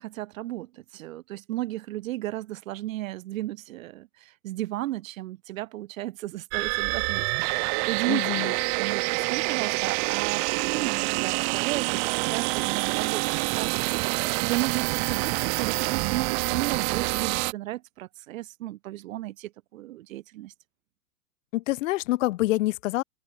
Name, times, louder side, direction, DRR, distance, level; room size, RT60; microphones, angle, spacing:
voice 1, 0.0-12.0 12.3-20.5, right 16 dB, 55° right, 1.5 m, -34 dB
sound 1, 6.5-17.5, right 37 dB, 15° right, 0.4 m, -27 dB
voice 2, 8.1-8.5 21.5-23.0, left 17 dB, 50° left, 1.6 m, -26 dB
open air
hypercardioid pair, 110°, 49 cm